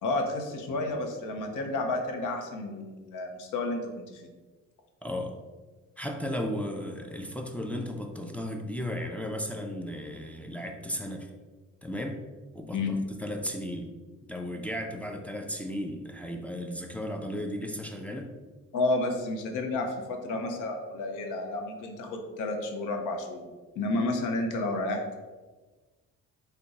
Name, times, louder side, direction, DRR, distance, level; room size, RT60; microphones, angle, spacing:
voice 1, 0.0-4.3 12.7-13.0 18.7-23.5 23.8-25.2, left 2 dB, 90° left, 3 dB, 0.7 m, -31 dB
voice 2, 5.0-5.4 6.0-11.3 11.8-12.2 12.5-13.9 14.3-18.3, equal, 5° left, 2 dB, 0.4 m, -35 dB
3.6 x 2.2 x 3.9 m, 1.3 s
cardioid pair, 90°, 30 cm